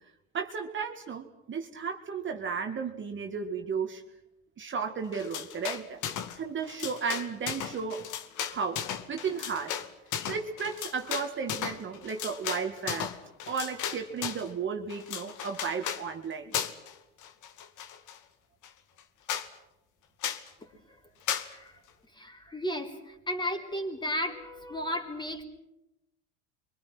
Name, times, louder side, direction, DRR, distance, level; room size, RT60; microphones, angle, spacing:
voice 1, 0.3-4.0 4.6-6.0 6.4-8.1 8.5-9.8 10.2-13.2 13.5-16.5, right 6 dB, 30° right, 4 dB, 2.0 m, -34 dB
sound 1, 5.1-6.4 6.6-14.5 14.9-16.0 16.5-16.9 17.2-18.2 18.6-18.7 19.0-19.1 19.3-19.5 20.2-20.5 21.3-21.5, left 9 dB, 50° left, 2.3 m, -35 dB
voice 2, 20.6-21.0 21.4-21.7 22.1-25.4, equal, 10° left, 3 dB, 4.0 m, -34 dB
29.5 x 24.0 x 6.1 m, 0.90 s
supercardioid pair, 110°, 38 cm